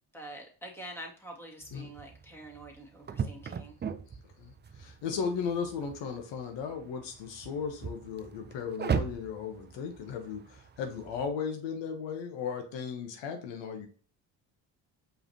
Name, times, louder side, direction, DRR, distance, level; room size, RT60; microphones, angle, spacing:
voice 1, 0.1-3.8, right 1 dB, 5° left, -1 dB, 1.9 m, -46 dB
sound 1, 1.6-11.3, right 6 dB, 25° right, 0.4 m, -39 dB
voice 2, 4.1-13.9, left 6 dB, 70° left, 4 dB, 0.9 m, -36 dB
4.8 x 3.3 x 2.8 m, 0.42 s
supercardioid pair, 60°, 45 cm